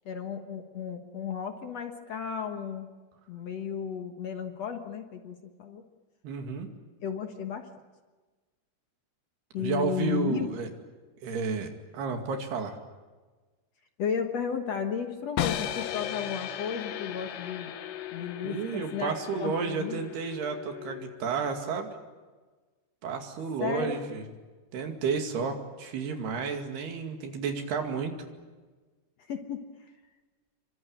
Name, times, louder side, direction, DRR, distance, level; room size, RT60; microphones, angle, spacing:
voice 1, 0.1-2.9 3.3-5.8 7.0-7.7 9.5-10.5 14.0-17.7 18.1-20.0 23.6-24.0 29.3-29.6, left 7 dB, 60° left, 5 dB, 1.8 m, -34 dB
voice 2, 6.2-6.7 9.6-10.7 11.2-12.8 18.4-21.9 23.0-24.2 24.7-28.2, right 5 dB, 75° right, 4 dB, 4.4 m, -31 dB
sound 1, 15.4-21.4, left 11 dB, 80° left, 3.3 m, -36 dB
27.0 x 24.5 x 8.9 m, 1.3 s
omnidirectional pair, 4.7 m